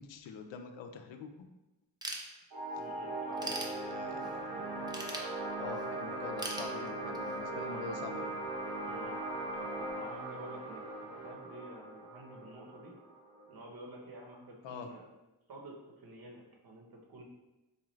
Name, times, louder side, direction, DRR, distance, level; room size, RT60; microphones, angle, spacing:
voice 1, 0.0-1.5 3.4-4.9 5.6-8.4 14.6-14.9, left 5 dB, 75° left, 5 dB, 0.5 m, -45 dB
Ratchet pawl / Tools, 2.0-2.8 3.2-4.3 4.9-5.9 6.4-7.4, right 2 dB, 10° right, 0.4 m, -41 dB
sound 1, 2.5-13.6, right 2 dB, 80° right, 1.3 m, -39 dB
voice 2, 2.7-3.6 8.8-9.2 9.5-10.8 11.1-12.9 13.5-15.1 15.5-17.2, right 1 dB, 55° right, 0 dB, 0.9 m, -50 dB
4.2 x 2.4 x 3.1 m, 1.0 s
cardioid pair, 100°, 45 cm